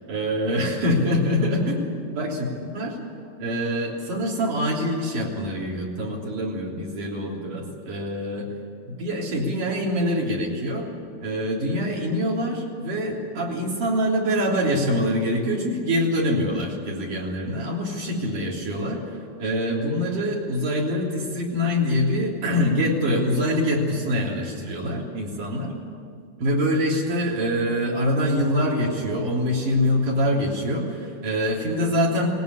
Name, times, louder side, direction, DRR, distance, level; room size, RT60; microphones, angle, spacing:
voice 1, 0.1-1.9 2.2-3.0 3.4-8.5 8.9-10.9 11.2-19.0 19.4-25.7 26.4-32.3, equal, 60° right, -2 dB, 4.8 m, -24 dB
19.0 x 19.0 x 9.8 m, 2.2 s
omnidirectional pair, 4.2 m